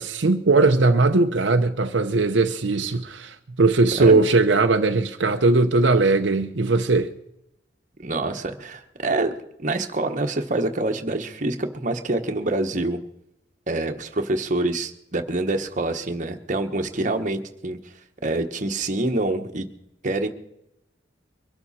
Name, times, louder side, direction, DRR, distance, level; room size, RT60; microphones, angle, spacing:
voice 1, 0.0-7.1, right 3 dB, 75° right, 0.8 m, -19 dB
voice 2, 8.0-9.3 9.6-13.0 13.7-17.8 18.2-19.7 20.0-20.3, right 2 dB, 45° right, 1.2 m, -26 dB
23.5 x 12.5 x 4.3 m
head